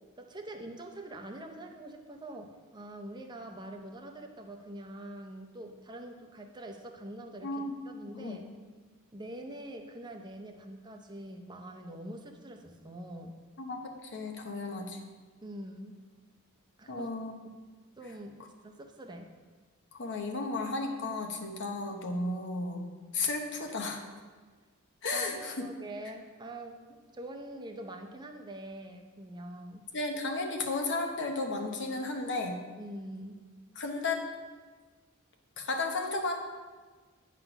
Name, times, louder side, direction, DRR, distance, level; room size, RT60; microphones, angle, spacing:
voice 1, 0.2-8.5 9.1-13.3 15.4-15.9 16.8-17.1 18.0-19.3 25.1-29.8 32.8-33.4, right 1 dB, 20° right, 3 dB, 0.6 m, -44 dB
voice 2, 7.4-7.7 8.1-8.4 13.6-15.0 16.9-17.4 20.0-22.9 23.1-24.0 25.0-25.7 29.9-32.6 33.8-34.3 35.6-36.4, left 3 dB, 55° left, 4 dB, 0.9 m, -34 dB
9.3 x 3.7 x 5.9 m, 1.4 s
head